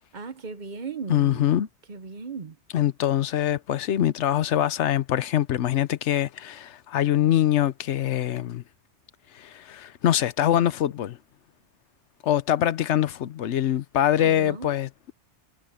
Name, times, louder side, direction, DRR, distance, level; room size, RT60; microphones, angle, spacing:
voice 1, 0.1-1.5 1.9-2.6 14.2-14.7, right 5 dB, 45° right, 1.0 m, -36 dB
voice 2, 1.1-1.7 2.7-8.6 9.3-11.2 12.2-15.1, left 11 dB, 80° left, 1.0 m, -24 dB
omnidirectional pair, 1.2 m